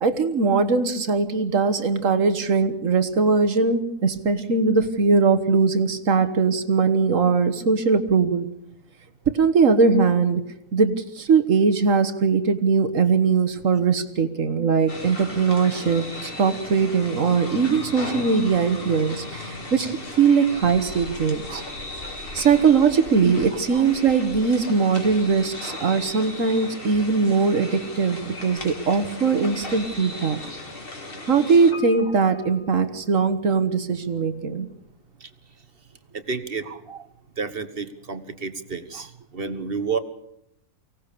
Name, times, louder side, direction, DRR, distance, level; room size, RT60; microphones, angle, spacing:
voice 1, 0.0-8.5 9.3-10.4 10.7-21.6 22.3-30.4 31.3-34.7, right 5 dB, 60° right, 11 dB, 1.7 m, -20 dB
sound 1, 14.9-31.7, left 2 dB, 40° left, 2.4 m, -36 dB
Piano, 31.7-33.8 34.0-34.1, left 3 dB, 90° left, 4.2 m, -44 dB
voice 2, 36.1-37.1 37.4-40.0, right 5 dB, 40° right, 8 dB, 1.5 m, -31 dB
24.5 x 17.5 x 6.8 m, 0.75 s
omnidirectional pair, 1.6 m